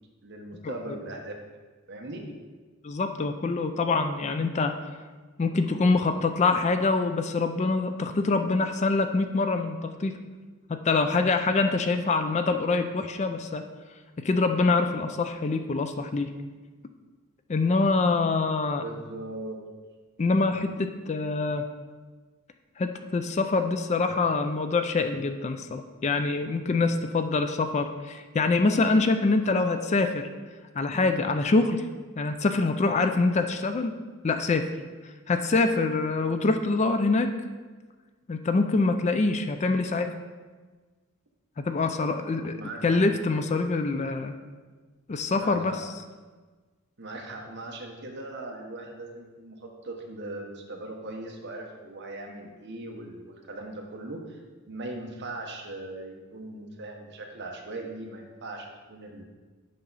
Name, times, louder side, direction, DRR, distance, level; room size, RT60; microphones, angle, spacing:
voice 1, 0.2-1.4 1.9-2.2 18.7-19.6 42.4-43.0 45.3-45.8 47.0-54.4 54.7-59.2, right 2 dB, 50° right, 1 dB, 1.1 m, -39 dB
voice 2, 2.8-4.8 5.4-10.1 10.7-13.6 14.2-16.3 17.5-18.8 20.2-21.7 22.8-30.3 30.7-31.8 32.2-33.9 34.2-34.7 35.3-37.3 38.3-40.1 41.6-42.6 42.8-44.3 45.1-45.8, left 3 dB, 30° left, 8 dB, 0.4 m, -25 dB
8.3 x 5.7 x 4.1 m, 1.4 s
head